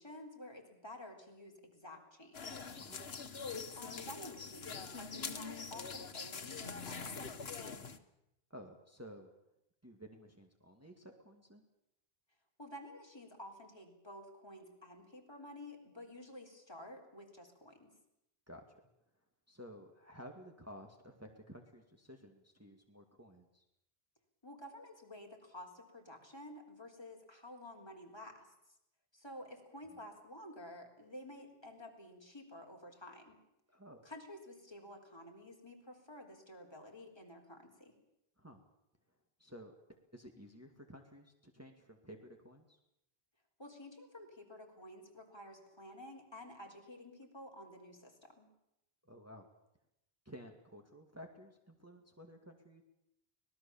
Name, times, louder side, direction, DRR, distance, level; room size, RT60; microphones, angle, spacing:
voice 1, 0.0-2.6 3.7-7.5 12.6-17.9 24.4-28.5 29.1-33.4 34.0-37.9 43.6-48.5, left 1 dB, 25° left, 0 dB, 4.0 m, -51 dB
sound 1, 2.3-8.0, left 5 dB, 80° left, 1.6 m, -44 dB
voice 2, 8.5-9.3 9.8-11.6 18.5-18.6 19.5-23.6 33.7-34.0 38.4-38.6 39.4-39.7 40.1-42.8 49.0-49.5 50.3-52.8, equal, 15° right, 3 dB, 2.1 m, -54 dB
25.5 x 18.5 x 7.2 m, 0.84 s
omnidirectional pair, 1.0 m